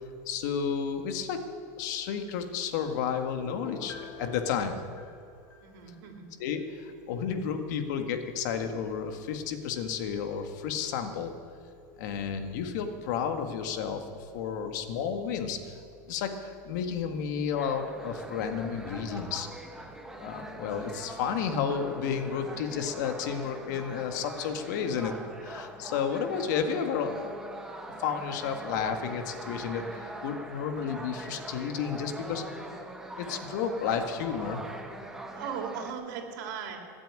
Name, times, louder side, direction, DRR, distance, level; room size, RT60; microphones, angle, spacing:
voice 1, 0.2-1.4 1.8-4.8 6.4-11.3 12.0-15.8 16.1-19.5 20.2-25.1 25.4-27.6 28.0-32.4 33.2-34.6, left 7 dB, 70° left, 6 dB, 1.8 m, -32 dB
Piano, 3.5-6.2 6.6-6.7, left 4 dB, 20° left, 3.9 m, -47 dB
voice 2, 5.6-6.3 35.3-36.8, right 7 dB, 75° right, 2 dB, 3.2 m, -37 dB
sound 1, 17.5-35.9, right 1 dB, 5° right, 1.5 m, -42 dB
19.0 x 7.5 x 8.8 m, 2.4 s
supercardioid pair, 135°, 10 cm